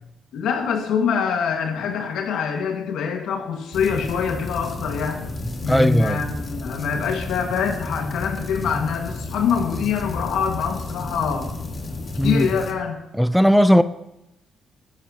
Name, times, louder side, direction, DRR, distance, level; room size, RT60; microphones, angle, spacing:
voice 1, 0.3-5.2 5.6-11.5 12.2-13.0, left 6 dB, 80° left, 1.8 m, -24 dB
sound 1, 3.7-12.7, left 2 dB, 35° left, 2.0 m, -32 dB
voice 2, 5.7-6.2 12.2-12.5 13.2-13.8, equal, ahead, 0.5 m, -16 dB
14.0 x 13.5 x 2.9 m
cardioid pair, 90°, 0 cm